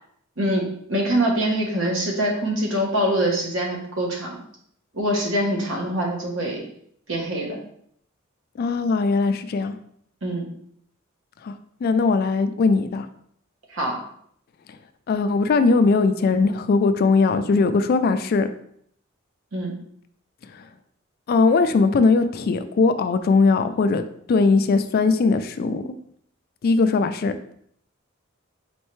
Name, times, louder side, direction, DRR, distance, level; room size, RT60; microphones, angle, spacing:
voice 1, 0.4-4.4 4.9-6.6 7.1-7.6 10.2-10.4 13.7-14.0 19.5-19.7, right 1 dB, 70° right, -1 dB, 1.1 m, -24 dB
voice 2, 8.6-9.8 11.4-11.6 11.8-13.1 15.1-18.5 20.4-20.7 21.3-24.0 24.3-25.9 26.6-27.5, left 4 dB, 50° left, 10 dB, 0.3 m, -20 dB
4.4 x 3.1 x 3.1 m, 0.67 s
head